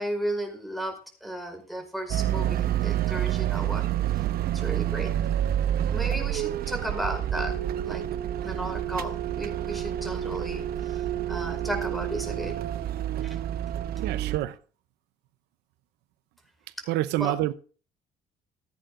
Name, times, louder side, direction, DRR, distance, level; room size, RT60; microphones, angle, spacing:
voice 1, 0.0-3.8 4.5-5.1 5.9-7.5 7.8-8.1 8.4-12.6 13.2-13.4 17.2-17.3, right 1 dB, ahead, 5.2 m, -34 dB
sound 1, 2.1-14.4, right 11 dB, 65° right, 0.9 m, -28 dB
voice 2, 14.0-14.6 16.8-17.5, right 16 dB, 90° right, 0.8 m, -27 dB
16.0 x 9.2 x 3.8 m
cardioid pair, 110°, 17 cm